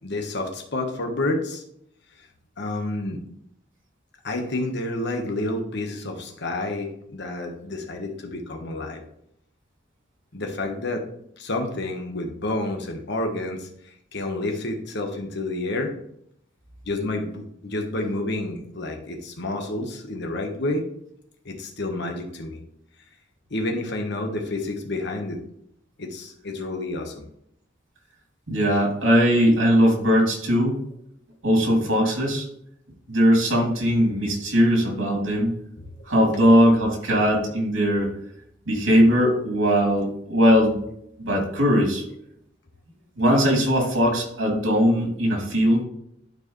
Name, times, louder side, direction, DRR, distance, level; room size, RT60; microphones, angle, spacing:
voice 1, 0.0-1.6 2.6-3.2 4.2-9.0 10.3-11.0 11.4-13.7 14.1-15.9 16.9-20.9 21.4-22.6 23.5-25.4 26.0-27.2 36.0-36.1, left 2 dB, 60° left, 3 dB, 1.3 m, -29 dB
voice 2, 28.5-30.8 31.4-32.5 33.1-35.5 36.0-38.1 38.7-40.7 41.2-42.0 43.2-45.8, equal, 90° right, 0 dB, 2.9 m, -20 dB
11.5 x 4.7 x 3.2 m, 0.72 s
head